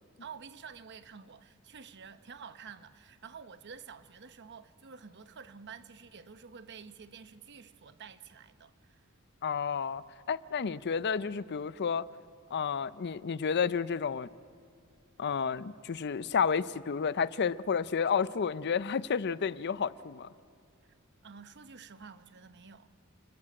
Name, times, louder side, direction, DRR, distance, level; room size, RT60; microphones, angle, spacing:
voice 1, 0.2-9.0 10.6-10.7 21.2-22.9, right 6 dB, 55° right, 0.9 m, -49 dB
voice 2, 9.4-10.0 10.3-12.1 12.5-14.3 15.2-20.3, left 6 dB, 50° left, 0.5 m, -31 dB
29.5 x 14.0 x 8.7 m
head